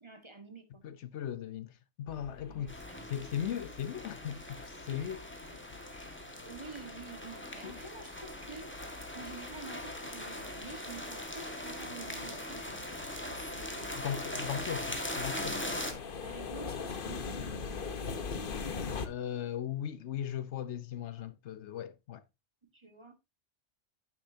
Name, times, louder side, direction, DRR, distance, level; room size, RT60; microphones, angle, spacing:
voice 1, 0.0-0.8 2.5-3.1 4.9-5.2 5.9-8.8 9.1-14.6 16.2-18.3 18.6-18.9 22.7-23.1, right 4 dB, 25° right, 1.5 m, -50 dB
voice 2, 0.8-2.8 3.1-5.2 7.6-7.8 13.9-15.8 19.0-22.2, left 9 dB, 75° left, 1.0 m, -38 dB
sound 1, 2.1-19.1, left 5 dB, 50° left, 1.1 m, -44 dB
sound 2, 2.7-15.9, left 1 dB, 10° left, 1.6 m, -41 dB
10.0 x 9.1 x 2.7 m
omnidirectional pair, 1.2 m